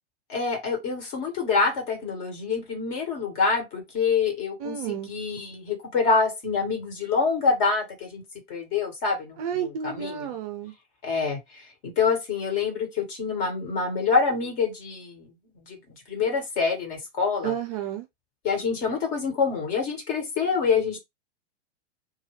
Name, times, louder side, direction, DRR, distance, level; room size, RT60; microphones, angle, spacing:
voice 1, 0.3-8.2 8.5-10.3 11.0-15.3 15.7-15.8 16.1-17.5 18.4-21.0, left 5 dB, 40° left, 1.6 m, -26 dB
voice 2, 4.6-5.1 9.4-10.7 17.4-18.1, right 9 dB, 35° right, 0.4 m, -31 dB
2.6 x 2.3 x 3.2 m
figure-of-eight pair, 100°, 33 cm